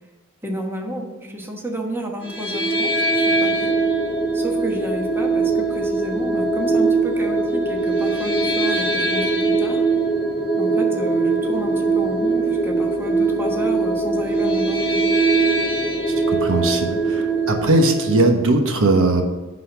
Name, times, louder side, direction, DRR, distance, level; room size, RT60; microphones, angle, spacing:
voice 1, 0.4-3.7 4.3-9.9 10.6-15.0, right 1 dB, 10° right, 1 dB, 1.1 m, -31 dB
sound 1, 2.2-18.3, right 3 dB, 25° left, 1.5 m, -21 dB
voice 2, 16.3-19.2, right 2 dB, 65° right, 4 dB, 1.1 m, -19 dB
10.5 x 4.2 x 5.8 m, 1.2 s
head